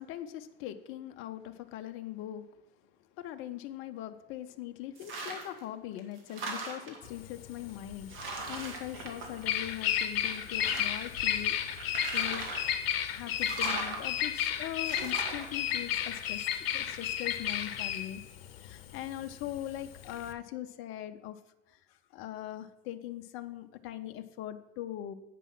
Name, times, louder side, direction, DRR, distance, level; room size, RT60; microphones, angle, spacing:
voice 1, 0.0-2.5 3.2-11.6 12.1-12.5 13.1-16.5 16.7-18.2 18.6-21.4 21.7-25.1, left 12 dB, 45° left, 9 dB, 0.7 m, -41 dB
sound 1, 5.0-5.6 6.0-7.1 7.7-7.8 8.1-9.8 10.2-11.1 11.8-12.7 13.4-14.0 14.8-15.5, right 3 dB, 40° right, 2.1 m, -39 dB
Bird vocalization bird call bird song, 7.1-20.3, left 10 dB, 70° left, 0.8 m, -32 dB
8.4 x 5.4 x 6.0 m, 0.93 s
hypercardioid pair, 90°, 30 cm